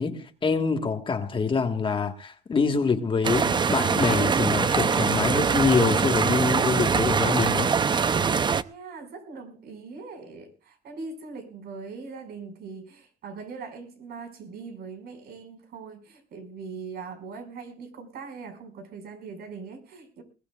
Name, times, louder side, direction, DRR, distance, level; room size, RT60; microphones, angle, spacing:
voice 1, 0.0-7.7, left 5 dB, 30° left, 1.5 m, -25 dB
sound 1, 3.2-8.6, right 6 dB, 25° right, 0.6 m, -23 dB
voice 2, 8.6-20.2, right 4 dB, 70° right, 5.5 m, -41 dB
21.5 x 16.5 x 2.4 m
cardioid pair, 110°, 17 cm